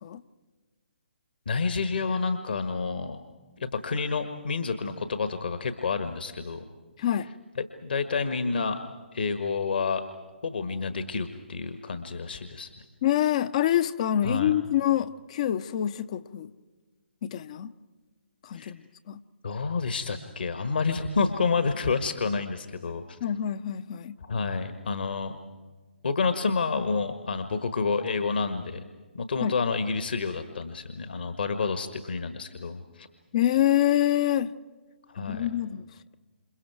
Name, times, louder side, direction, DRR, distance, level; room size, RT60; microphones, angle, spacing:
voice 1, 1.4-3.2 3.6-6.6 7.5-8.8 9.1-10.0 10.4-12.7 14.2-14.6 18.5-18.7 19.4-23.2 24.2-25.3 26.0-28.8 29.1-33.1 35.1-35.5, left 4 dB, 60° left, 1.4 m, -29 dB
voice 2, 13.0-16.5 17.2-17.7 18.4-19.2 23.2-24.1 29.4-29.5 33.3-34.5 35.2-35.9, left 11 dB, 35° left, 0.6 m, -26 dB
29.0 x 28.0 x 4.7 m
figure-of-eight pair, 135°, 6 cm